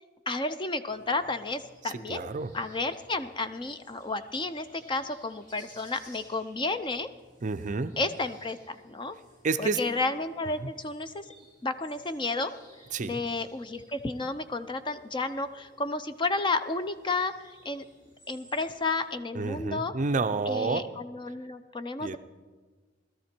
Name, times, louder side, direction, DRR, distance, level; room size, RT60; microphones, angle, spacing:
voice 1, 0.3-7.1 8.0-9.2 9.6-11.3 11.6-12.5 13.0-17.3 17.6-17.8 18.3-19.9 20.5-22.2, left 3 dB, 25° left, 11 dB, 0.5 m, -32 dB
sound 1, 0.8-19.2, equal, 45° left, 5.2 m, -59 dB
voice 2, 1.8-2.5 7.4-7.9 9.4-9.8 10.6-10.7 12.9-13.2 19.3-20.9 22.0-22.2, right 4 dB, 40° right, 11 dB, 0.5 m, -29 dB
17.5 x 13.0 x 4.4 m, 1.4 s
head